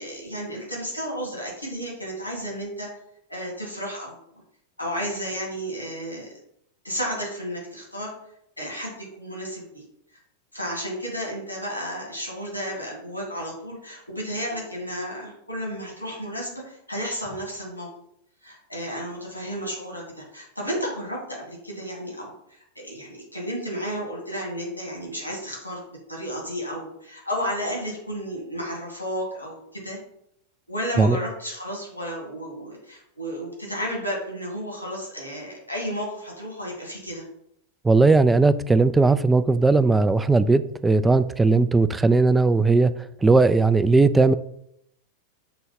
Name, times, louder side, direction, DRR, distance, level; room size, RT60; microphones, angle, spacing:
voice 1, 0.0-2.9 3.3-4.4 4.8-6.3 6.8-8.1 8.6-9.8 10.5-17.9 18.4-25.8 26.1-30.0 30.7-37.2, equal, 90° left, -2 dB, 2.4 m, -32 dB
voice 2, 37.8-42.9 43.2-44.3, right 3 dB, 10° right, 14 dB, 0.3 m, -18 dB
6.8 x 3.6 x 4.3 m, 0.75 s
figure-of-eight pair, 90°, 0 cm